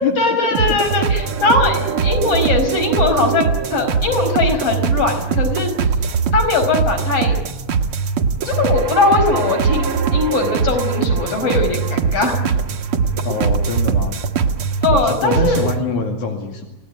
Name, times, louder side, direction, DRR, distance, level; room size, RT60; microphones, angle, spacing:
voice 1, 0.2-5.7 6.3-7.3 8.5-12.5 14.8-15.6, left 3 dB, 50° left, 5 dB, 5.9 m, -19 dB
sound 1, 0.5-15.8, right 5 dB, 55° right, 2.0 m, -21 dB
voice 2, 13.3-14.2 14.9-16.6, left 3 dB, 80° left, 1 dB, 3.8 m, -23 dB
27.5 x 18.5 x 9.8 m, 1.1 s
omnidirectional pair, 3.4 m